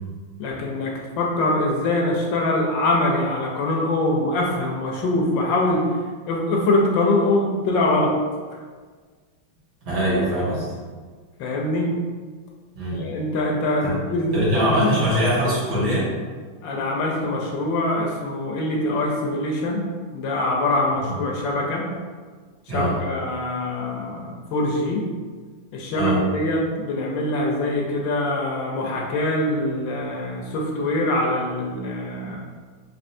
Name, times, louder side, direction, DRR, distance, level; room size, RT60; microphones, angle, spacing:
voice 1, 0.4-5.9 6.3-8.1 11.4-12.0 12.9-14.4 14.6-15.0 16.6-19.9 20.1-21.9 22.7-25.0 25.7-32.4, left 2 dB, 80° left, -1 dB, 1.3 m, -23 dB
voice 2, 9.8-10.6 12.7-13.1 13.8-13.9 14.3-16.1 21.1-21.2 22.7-23.0 25.9-26.2, right 1 dB, 60° right, -8 dB, 1.6 m, -22 dB
4.2 x 3.1 x 2.6 m, 1.5 s
omnidirectional pair, 2.1 m